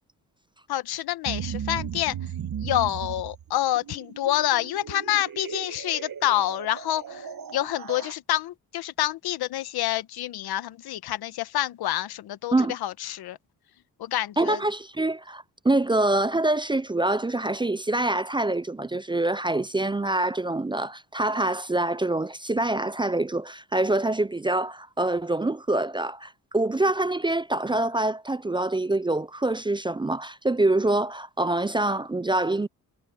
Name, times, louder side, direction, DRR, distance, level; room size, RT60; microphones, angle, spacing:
voice 1, 0.7-2.2 2.6-13.4 14.0-14.6, left 13 dB, 90° left, 1.1 m, -27 dB
sound 1, 1.2-8.1, right 8 dB, 65° right, 1.7 m, -36 dB
voice 2, 14.4-32.7, right 2 dB, 15° right, 0.4 m, -25 dB
cardioid pair, 65°, 37 cm